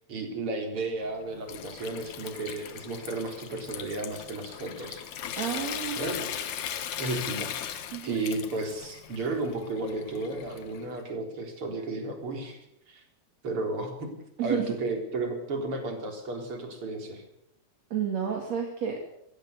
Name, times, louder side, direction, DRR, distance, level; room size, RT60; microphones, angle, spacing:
voice 1, 0.1-5.0 5.9-6.4 7.0-12.6 12.9-13.0 13.4-14.2 14.4-17.2, right 2 dB, 45° right, 3 dB, 4.8 m, -33 dB
Water tap faucet / Sink (filling or washing) / Trickle dribble, 1.0-11.0, left 10 dB, 70° left, 2.7 m, -38 dB
voice 2, 5.4-6.1 7.9-8.2 14.4-14.7 17.9-19.0, right 8 dB, 60° right, 1 dB, 3.7 m, -30 dB
22.0 x 17.5 x 6.8 m, 0.75 s
omnidirectional pair, 3.5 m